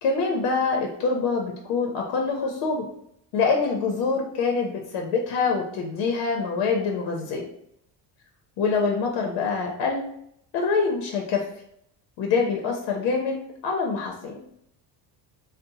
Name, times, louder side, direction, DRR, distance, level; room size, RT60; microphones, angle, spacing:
voice 1, 0.0-2.8 3.3-7.4 8.6-10.0 10.5-11.4 12.2-13.4 13.6-14.4, left 4 dB, 70° left, 1 dB, 0.6 m, -25 dB
2.7 x 2.1 x 4.0 m, 0.71 s
cardioid pair, 160°, 43 cm